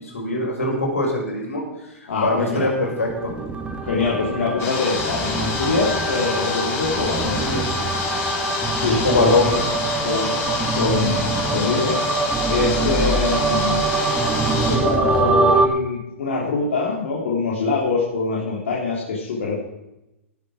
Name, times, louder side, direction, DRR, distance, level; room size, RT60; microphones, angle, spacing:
voice 1, 0.1-1.6 2.2-3.3 7.5-7.6 9.0-9.7, left 2 dB, 85° left, -2 dB, 6.1 m, -22 dB
voice 2, 2.1-2.7 3.8-7.5 8.7-9.3 10.0-12.0 12.5-19.6, left 4 dB, 70° left, -4 dB, 3.3 m, -24 dB
sound 1, 2.8-15.7, right 3 dB, 15° right, 2.0 m, -24 dB
sound 2, 4.6-15.2, left 4 dB, 35° left, 3.8 m, -28 dB
18.0 x 8.4 x 5.0 m, 0.91 s
hypercardioid pair, 115°, 7 cm